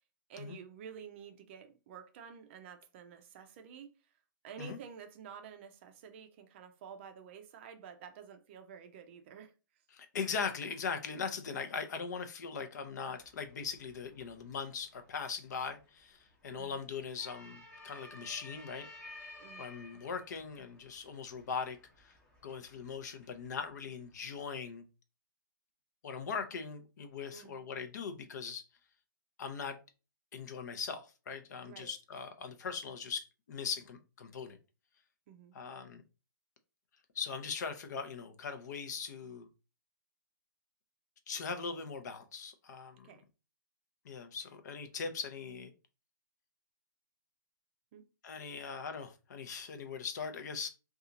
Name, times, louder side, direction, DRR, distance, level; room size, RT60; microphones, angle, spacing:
voice 1, 0.3-3.9 4.4-9.5 16.5-16.8 19.4-19.7 27.3-27.6 31.6-31.9 35.3-35.6 43.0-43.2 47.9-48.0, right 7 dB, 35° right, 0.5 m, -50 dB
voice 2, 9.9-18.9 19.6-22.1 22.4-24.8 26.0-28.7 29.4-29.8 30.3-34.6 35.5-36.0 37.1-39.5 41.3-43.1 44.0-45.7 48.2-50.7, left 5 dB, 55° left, 0.6 m, -40 dB
sound 1, 13.2-24.4, left 1 dB, 10° left, 0.8 m, -56 dB
2.7 x 2.4 x 3.8 m
hypercardioid pair, 150°, 11 cm